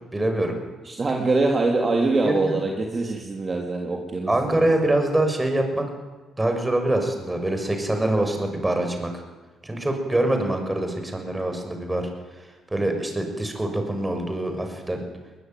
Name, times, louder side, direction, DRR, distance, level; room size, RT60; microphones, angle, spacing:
voice 1, 0.1-0.6 2.2-2.5 4.3-5.9 6.4-9.1 9.6-12.0 12.7-15.0, right 1 dB, 15° right, 5 dB, 6.5 m, -24 dB
voice 2, 0.8-4.6, right 3 dB, 30° right, 1 dB, 3.2 m, -24 dB
21.5 x 20.5 x 9.4 m, 1.3 s
cardioid pair, 90°, 0 cm